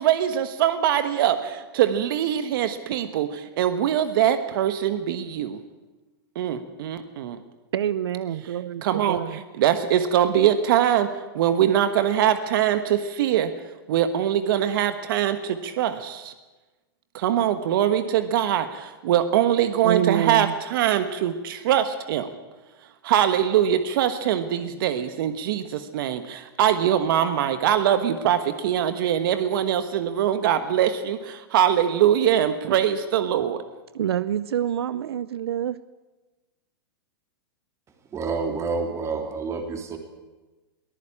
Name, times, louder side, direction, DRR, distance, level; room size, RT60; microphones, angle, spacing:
voice 1, 0.0-5.6 6.3-7.4 8.8-13.5 13.9-16.3 17.1-22.3 23.0-33.6, right 10 dB, 60° right, 10 dB, 1.4 m, -23 dB
voice 2, 7.7-9.4 19.8-20.5 33.9-35.8, right 10 dB, 85° right, 17 dB, 0.6 m, -26 dB
voice 3, 38.1-40.0, right 4 dB, 20° right, 5 dB, 3.2 m, -28 dB
22.5 x 14.5 x 8.7 m, 1.2 s
hypercardioid pair, 130°, 13 cm